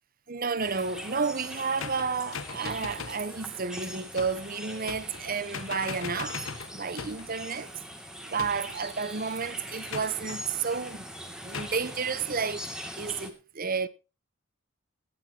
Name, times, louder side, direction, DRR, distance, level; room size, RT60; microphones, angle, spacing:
voice 1, 0.3-6.4 6.7-7.7 8.2-11.0 11.4-12.7 13.0-13.9, right 5 dB, 45° right, 1.0 m, -31 dB
sound 1, 0.6-13.3, equal, 5° right, 2.5 m, -42 dB
sound 2, 1.8-3.3 4.2-4.5 4.9-5.3 5.5-7.3 8.4-8.9 9.9-10.4 11.5-11.9, left 5 dB, 80° left, 1.2 m, -39 dB
19.0 x 13.0 x 3.0 m
head